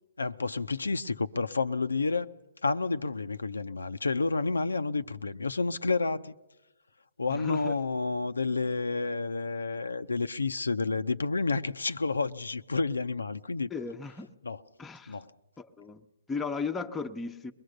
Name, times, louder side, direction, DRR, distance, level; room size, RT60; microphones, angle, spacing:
voice 1, 0.2-2.3 2.6-6.3 7.2-13.7 14.4-14.6 15.1-15.3, left 3 dB, 85° left, 0.7 m, -30 dB
voice 2, 7.3-7.7 13.7-14.3 14.8-15.2 15.6-17.5, left 5 dB, 10° left, 0.9 m, -36 dB
22.5 x 21.0 x 6.6 m
hypercardioid pair, 135°, 0 cm